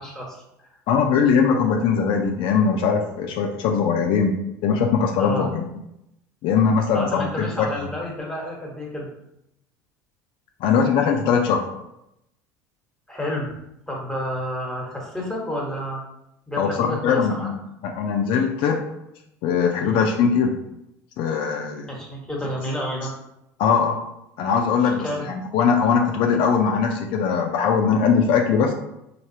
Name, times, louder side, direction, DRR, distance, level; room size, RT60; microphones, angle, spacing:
voice 1, 0.0-0.8 5.2-5.5 6.9-9.1 13.1-13.5 13.9-16.0 16.5-17.5 19.8-20.0 21.9-23.1 24.8-25.3, equal, 5° left, -2 dB, 1.1 m, -30 dB
voice 2, 0.9-4.3 4.6-5.7 6.4-7.7 10.6-11.6 16.6-17.5 17.8-18.8 19.4-20.6 21.2-21.9 23.6-24.1 24.4-28.7, left 6 dB, 60° left, 3 dB, 0.4 m, -21 dB
3.3 x 2.4 x 2.7 m, 0.84 s
hypercardioid pair, 75°, 9 cm